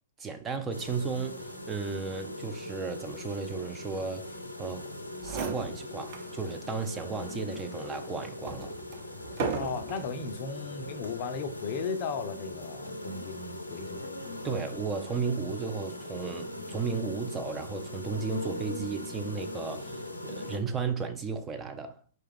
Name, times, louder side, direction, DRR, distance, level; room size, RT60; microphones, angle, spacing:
voice 1, 0.2-4.9 5.2-8.8 14.4-22.0, right 5 dB, 15° right, 0.4 m, -34 dB
sound 1, 0.7-20.6, left 1 dB, 85° left, 0.6 m, -40 dB
sound 2, 4.9-5.0 5.2-6.3 6.8-6.9 7.6-10.1 10.9-11.3, right 4 dB, 40° right, 0.8 m, -36 dB
voice 2, 9.5-14.1 14.5-14.6, left 5 dB, 40° left, 0.5 m, -36 dB
4.7 x 2.2 x 3.4 m
figure-of-eight pair, 115°, 0 cm